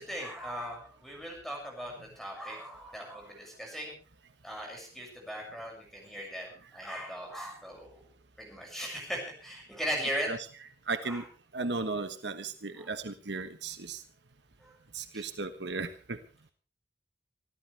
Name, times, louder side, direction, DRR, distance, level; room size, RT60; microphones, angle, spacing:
voice 1, 0.0-3.9 4.4-8.0 8.4-10.3 11.0-11.2 12.8-12.9 14.6-14.8 15.1-15.2, equal, ahead, 0 dB, 6.5 m, -38 dB
voice 2, 10.9-11.2 11.5-14.0 14.9-16.2, right 3 dB, 75° right, 9 dB, 1.2 m, -35 dB
25.5 x 13.5 x 3.4 m, 0.35 s
head